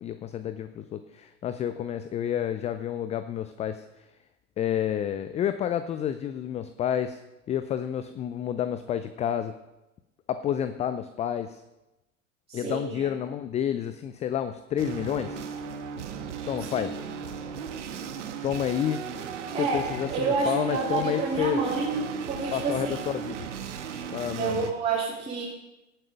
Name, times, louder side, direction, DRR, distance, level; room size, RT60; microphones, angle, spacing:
voice 1, 0.0-3.9 4.6-7.2 7.5-9.6 10.3-11.6 12.5-15.4 16.5-17.0 18.4-19.0 19.5-21.6 22.5-23.5 24.1-24.7, left 9 dB, 15° left, 11 dB, 0.5 m, -30 dB
voice 2, 12.5-13.1 16.7-17.0 19.5-23.0 24.4-25.4, right 4 dB, 15° right, -7 dB, 3.5 m, -29 dB
sound 1, 14.8-24.7, right 7 dB, 65° right, 1.6 m, -36 dB
17.5 x 8.9 x 5.2 m, 0.99 s
figure-of-eight pair, 85°, 39 cm